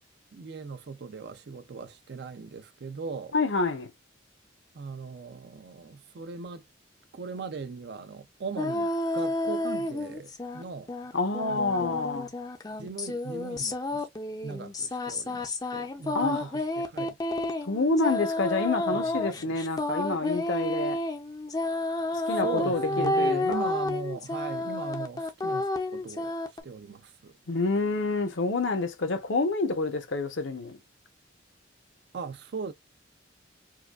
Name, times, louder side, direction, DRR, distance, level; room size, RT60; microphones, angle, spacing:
voice 1, 0.3-3.3 4.7-6.6 7.1-11.1 11.5-12.0 12.8-14.1 14.4-17.2 18.9-19.6 22.4-27.4 32.1-32.7, right 4 dB, 55° right, 0.4 m, -39 dB
voice 2, 3.3-3.9 11.1-12.3 16.1-16.5 17.6-21.0 22.1-23.7 27.5-30.8, left 3 dB, 75° left, 0.8 m, -28 dB
sound 1, 8.6-10.6 10.9-26.6, left 2 dB, 20° left, 0.5 m, -31 dB
4.6 x 2.3 x 2.3 m
head